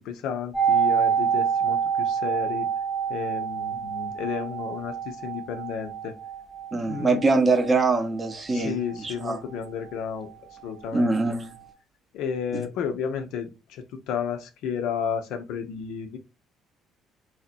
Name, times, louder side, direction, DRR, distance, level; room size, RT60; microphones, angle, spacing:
voice 1, 0.0-2.7 3.1-6.1 6.9-7.3 8.5-11.2 12.1-16.2, left 7 dB, 65° left, 0.4 m, -32 dB
sound 1, 0.5-10.3 10.5-10.6, right 7 dB, 20° left, 0.7 m, -28 dB
voice 2, 6.7-9.4 10.9-11.5 12.5-12.6, right 3 dB, 30° right, 0.6 m, -23 dB
2.7 x 2.0 x 2.4 m
figure-of-eight pair, 50°, 0 cm